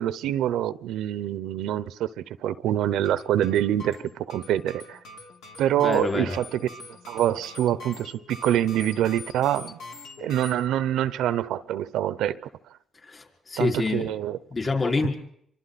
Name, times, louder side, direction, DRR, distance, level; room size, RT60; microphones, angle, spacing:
voice 1, 0.0-5.0 5.6-6.6 7.1-9.8 10.2-12.4 13.6-14.4, right 11 dB, 85° right, 0.8 m, -25 dB
sound 1, 3.0-10.5, left 2 dB, 85° left, 3.8 m, -44 dB
voice 2, 5.8-6.4 13.1-14.1 14.5-15.1, left 3 dB, 35° left, 5.2 m, -26 dB
28.0 x 24.5 x 4.2 m
cardioid pair, 90°, 0 cm